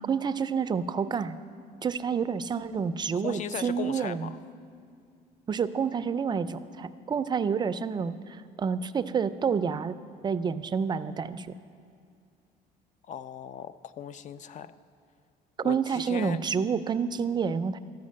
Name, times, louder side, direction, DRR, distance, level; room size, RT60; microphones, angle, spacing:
voice 1, 0.1-1.4 1.8-4.3 5.5-9.9 10.2-11.5 15.6-17.8, right 6 dB, 25° right, 12 dB, 0.4 m, -29 dB
voice 2, 3.2-4.4 13.1-14.7 15.6-16.4, left 9 dB, 45° left, 14 dB, 0.4 m, -38 dB
13.0 x 5.8 x 7.5 m, 2.3 s
cardioid pair, 110°, 17 cm